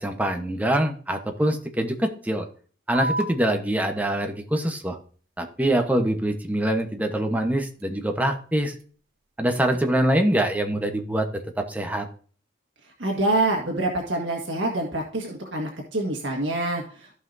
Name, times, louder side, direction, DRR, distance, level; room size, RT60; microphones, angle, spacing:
voice 1, 0.0-2.5 2.9-5.0 5.4-8.7 9.4-11.3 11.6-12.1, right 1 dB, 10° right, 4 dB, 1.0 m, -24 dB
sound 1, 3.0-10.0, right 1 dB, 55° right, 1.2 m, -39 dB
voice 2, 13.0-17.1, right 2 dB, 75° right, 0 dB, 1.7 m, -26 dB
15.0 x 5.6 x 2.7 m, 0.42 s
head